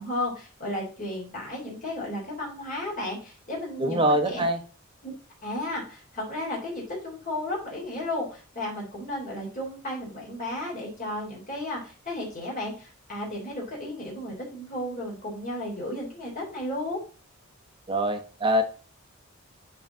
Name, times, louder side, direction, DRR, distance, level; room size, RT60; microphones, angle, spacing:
voice 1, 0.0-4.4 5.0-5.1 5.4-17.0, left 1 dB, 40° left, -4 dB, 3.4 m, -34 dB
voice 2, 3.8-4.6 17.9-18.6, right 1 dB, 25° right, 6 dB, 1.2 m, -24 dB
9.4 x 4.1 x 3.9 m, 0.38 s
head